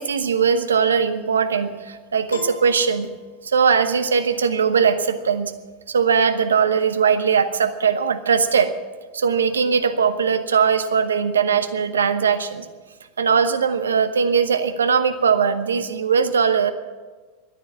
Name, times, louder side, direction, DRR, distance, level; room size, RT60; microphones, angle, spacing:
voice 1, 0.0-3.1 3.4-5.5 5.9-8.7 9.1-12.7 13.2-16.7, right 6 dB, 80° right, 10 dB, 1.0 m, -20 dB
Piano, 2.3-3.8, left 3 dB, 80° left, 1.8 m, -38 dB
14.0 x 10.5 x 8.5 m, 1.4 s
figure-of-eight pair, 85°, 0 cm